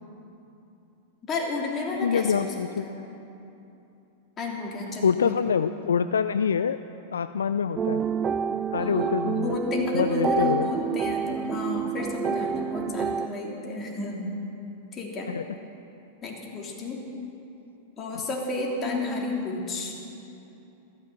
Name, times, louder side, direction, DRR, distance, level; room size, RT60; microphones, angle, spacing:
voice 1, 1.3-3.0 4.4-5.5 8.8-14.3 14.9-15.3 16.2-17.1 18.0-19.9, left 3 dB, 25° left, -1 dB, 3.4 m, -31 dB
voice 2, 2.0-2.9 5.0-6.8 7.1-8.0 8.7-9.6 9.9-10.7 15.3-15.4 18.1-18.2, left 7 dB, 75° left, 12 dB, 0.4 m, -25 dB
sound 1, 7.8-13.3, right 7 dB, 25° right, 0.4 m, -28 dB
14.5 x 14.0 x 7.1 m, 2.9 s
figure-of-eight pair, 95°, 0 cm